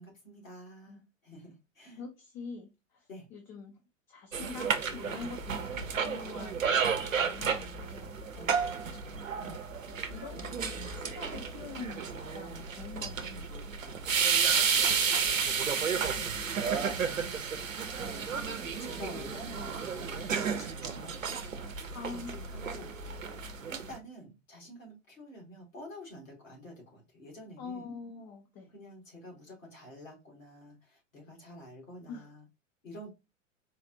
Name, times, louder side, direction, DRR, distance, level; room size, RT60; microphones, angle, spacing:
voice 1, 0.0-2.0 3.1-3.3 5.6-5.8 8.3-9.6 13.2-13.5 15.1-17.5 18.3-21.4 22.3-23.0 23.7-27.9 28.7-32.5 32.8-33.1, equal, 75° left, 2.0 m, -49 dB
voice 2, 2.0-3.8 4.1-8.3 9.4-9.7 10.1-14.3 18.0-18.5 21.9-22.4 27.6-28.7 32.1-32.3, left 5 dB, 25° left, 0.5 m, -45 dB
sound 1, 4.3-24.0, right 6 dB, 80° right, 0.7 m, -32 dB
4.0 x 2.4 x 2.6 m
figure-of-eight pair, 95°, 39 cm